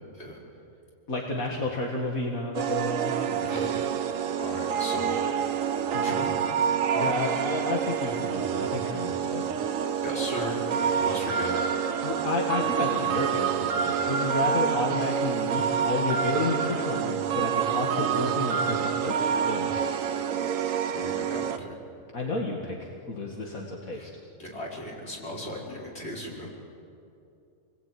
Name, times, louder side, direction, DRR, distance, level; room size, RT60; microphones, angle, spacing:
voice 1, 1.1-3.5 5.9-6.2 7.0-9.5 12.0-19.7 22.1-24.1, left 2 dB, 70° left, 0 dB, 2.7 m, -31 dB
sound 1, 2.5-21.6, right 7 dB, 70° right, 1.3 m, -27 dB
voice 2, 4.4-5.3 6.0-6.4 6.9-7.1 8.1-8.2 9.2-9.4 10.0-11.6 12.6-12.7 20.9-21.7 23.9-24.1 24.4-26.5, equal, 45° left, -3 dB, 5.5 m, -36 dB
28.5 x 21.0 x 9.6 m, 2.6 s
omnidirectional pair, 1.5 m